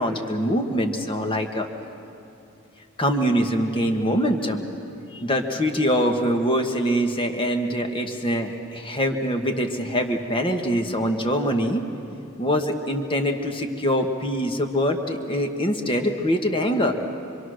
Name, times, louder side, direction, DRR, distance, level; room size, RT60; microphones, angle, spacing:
voice 1, 0.0-1.7 3.0-4.7 5.1-11.8 12.4-17.0, equal, 25° left, 5 dB, 1.5 m, -24 dB
25.5 x 25.0 x 6.4 m, 2.6 s
head